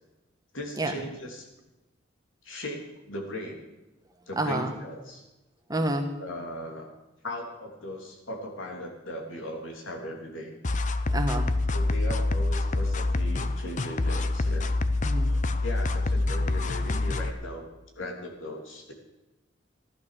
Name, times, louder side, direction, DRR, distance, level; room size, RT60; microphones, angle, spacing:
voice 1, 0.5-1.5 2.4-3.6 4.3-5.2 6.2-6.9 7.2-10.5 11.7-14.7 15.2-17.7 18.0-18.9, left 1 dB, 90° left, 1 dB, 3.3 m, -38 dB
voice 2, 4.4-4.7 5.7-6.1 11.1-11.5 15.0-15.4, right 1 dB, 20° right, 5 dB, 1.5 m, -28 dB
sound 1, 10.6-17.3, left 2 dB, 40° left, 0.7 m, -26 dB
15.5 x 11.5 x 6.8 m, 1.0 s
head